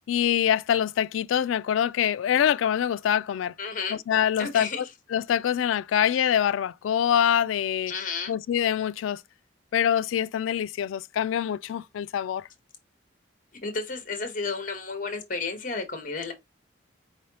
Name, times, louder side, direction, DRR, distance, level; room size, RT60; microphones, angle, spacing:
voice 1, 0.1-3.5 3.9-4.9 5.1-7.9 8.3-9.2 9.7-12.5, left 9 dB, 85° left, 0.3 m, -25 dB
voice 2, 3.6-4.0 4.4-4.9 7.9-8.3 13.6-16.3, left 4 dB, 45° left, 1.2 m, -32 dB
4.7 x 3.2 x 2.8 m
head